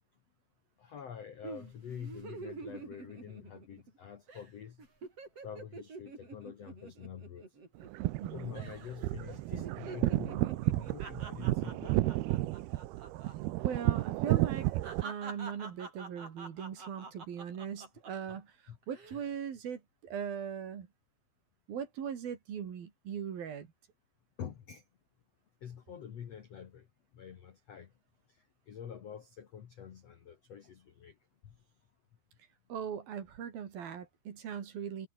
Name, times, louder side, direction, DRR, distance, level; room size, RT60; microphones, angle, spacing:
voice 1, 0.8-4.8 5.4-7.4 8.3-12.2 18.7-18.8 24.4-24.8 25.6-26.8 27.1-27.9 28.7-31.1, left 8 dB, 80° left, 1.4 m, -46 dB
sound 1, 1.4-4.0 4.3-4.5 4.8-8.2 8.5-9.0 9.3-13.3 13.6-13.8 14.2-18.3 18.8-19.2, right 4 dB, 30° right, 6.1 m, -47 dB
sound 2, 7.8-15.0, right 17 dB, 85° right, 2.2 m, -32 dB
voice 2, 8.2-8.5 13.6-14.7 15.0-18.5 18.9-20.9 21.7-23.7 32.7-35.1, right 8 dB, 55° right, 4.1 m, -39 dB
omnidirectional pair, 5.7 m